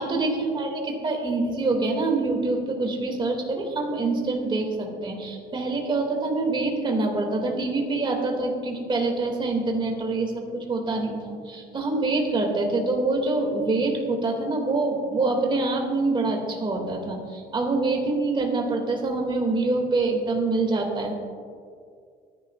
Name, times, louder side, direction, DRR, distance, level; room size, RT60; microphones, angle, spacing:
voice 1, 0.0-21.1, right 3 dB, 30° right, 1 dB, 2.5 m, -25 dB
24.5 x 10.5 x 2.5 m, 2.2 s
cardioid pair, 110°, 17 cm